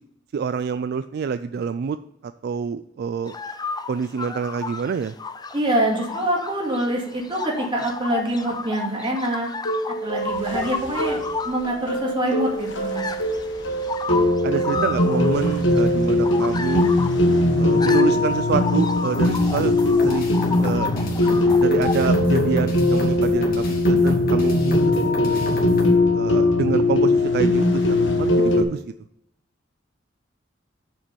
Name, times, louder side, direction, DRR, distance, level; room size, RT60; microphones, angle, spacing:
voice 1, 0.3-2.0 2.4-3.4 3.9-5.1 14.1-16.9 17.6-19.7 20.0-20.3 20.6-20.9 21.6-25.6 26.1-28.8, right 6 dB, 55° right, 12 dB, 0.3 m, -27 dB
sound 1, 3.2-22.0, left 4 dB, 20° left, 0.5 m, -33 dB
voice 2, 5.5-9.5 10.0-13.1, right 1 dB, 25° right, -2 dB, 2.3 m, -25 dB
sound 2, 9.7-28.6, left 2 dB, 70° left, 1.3 m, -20 dB
sound 3, 19.1-26.0, left 1 dB, 50° left, 1.9 m, -32 dB
7.2 x 5.2 x 6.9 m, 0.77 s
head